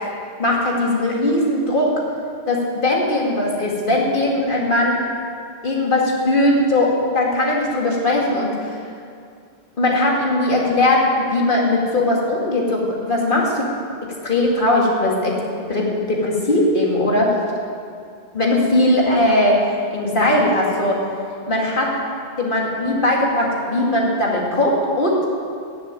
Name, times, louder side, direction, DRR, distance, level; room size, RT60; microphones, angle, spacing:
voice 1, 0.4-2.0 2.5-5.0 5.6-8.8 9.8-13.4 14.0-15.4 15.7-17.4 18.3-19.6 19.9-21.0 21.5-21.9 22.4-25.2, left 1 dB, 50° left, -2 dB, 2.5 m, -19 dB
14.5 x 7.2 x 9.1 m, 2.4 s
omnidirectional pair, 1.1 m